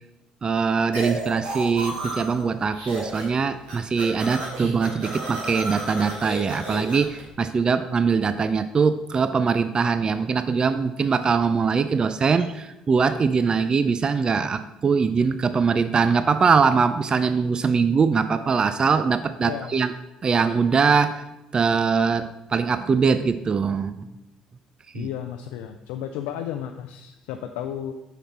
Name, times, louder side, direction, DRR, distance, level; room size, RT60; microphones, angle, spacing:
voice 1, 0.4-19.9 20.2-21.2 21.5-24.1 24.9-25.1, right 5 dB, 35° right, 12 dB, 0.4 m, -22 dB
sound 1, 0.9-2.4 2.7-3.4 3.6-7.2, right 2 dB, 80° right, 2.8 m, -32 dB
voice 2, 19.4-19.8 24.9-27.9, left 10 dB, 80° left, 6 dB, 0.4 m, -33 dB
6.6 x 6.0 x 4.2 m, 0.96 s
supercardioid pair, 65°, 2 cm